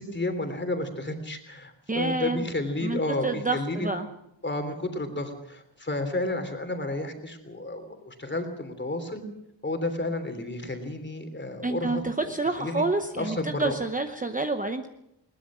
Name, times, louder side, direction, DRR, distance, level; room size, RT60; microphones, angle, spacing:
voice 1, 0.0-3.9 4.4-9.2 9.6-12.3 12.6-12.8 13.2-13.8, left 2 dB, 25° left, 7 dB, 3.1 m, -31 dB
voice 2, 1.9-2.4 2.8-4.1 11.6-14.9, right 3 dB, 15° right, 6 dB, 0.9 m, -28 dB
21.5 x 20.0 x 6.2 m, 0.83 s
wide cardioid pair, 180°, 45 cm